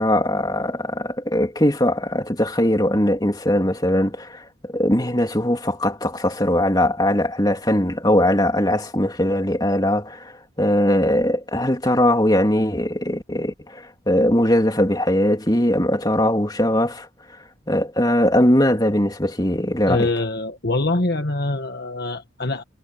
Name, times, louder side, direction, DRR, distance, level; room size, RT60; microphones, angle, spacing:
voice 1, 0.0-17.1 17.7-20.0, left 1 dB, 20° left, 3.4 m, -20 dB
voice 2, 19.9-22.6, left 2 dB, 50° left, 1.5 m, -24 dB
head